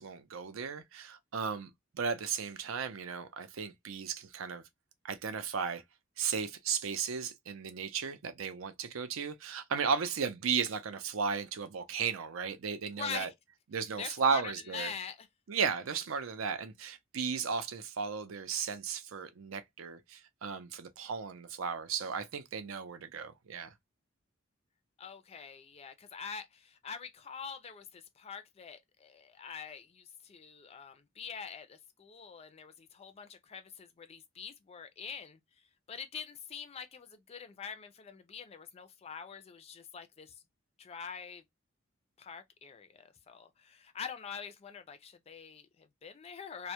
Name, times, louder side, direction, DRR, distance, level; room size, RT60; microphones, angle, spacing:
voice 1, 0.0-4.6 5.0-5.8 6.2-13.3 13.7-14.9 15.5-23.7, right 6 dB, 80° right, 0.5 m, -35 dB
voice 2, 12.9-13.3 14.0-15.3 25.0-35.4 35.9-40.3 40.8-41.4 42.2-46.7, left 6 dB, 30° left, 0.3 m, -44 dB
2.2 x 2.0 x 2.8 m
head